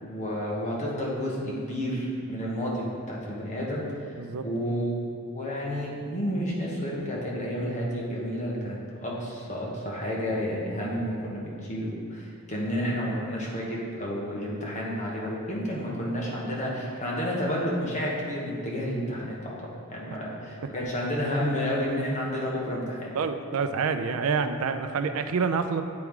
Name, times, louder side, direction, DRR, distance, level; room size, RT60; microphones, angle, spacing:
voice 1, 0.0-4.1 4.4-4.9 5.3-19.6 19.9-23.1, equal, 35° left, -4 dB, 1.1 m, -30 dB
voice 2, 23.1-25.8, right 5 dB, 70° right, 9 dB, 0.4 m, -27 dB
8.5 x 4.6 x 3.6 m, 2.3 s
head